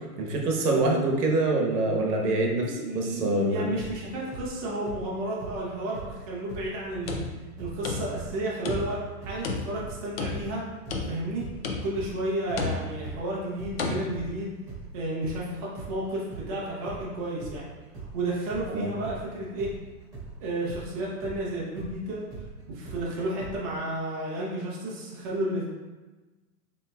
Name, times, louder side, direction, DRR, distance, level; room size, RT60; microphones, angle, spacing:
voice 1, 0.2-3.6 18.7-18.9, right 2 dB, 75° right, 0 dB, 1.1 m, -25 dB
voice 2, 2.6-7.2 7.6-10.6 11.1-11.4 11.8-14.5 14.9-17.7 18.1-19.7 20.4-22.3 22.7-25.6, right 1 dB, 25° right, -6 dB, 0.6 m, -32 dB
sound 1, 3.8-7.3 7.6-15.4 15.7-23.6, right 4 dB, 5° right, 1.4 m, -42 dB
sound 2, 6.9-8.4 8.7-9.1 9.4-10.6 10.9-11.4 11.6-12.1 12.6-13.1 13.8-14.0, left 3 dB, 40° left, 0.4 m, -32 dB
6.8 x 3.0 x 2.3 m, 1.2 s
supercardioid pair, 165°, 47 cm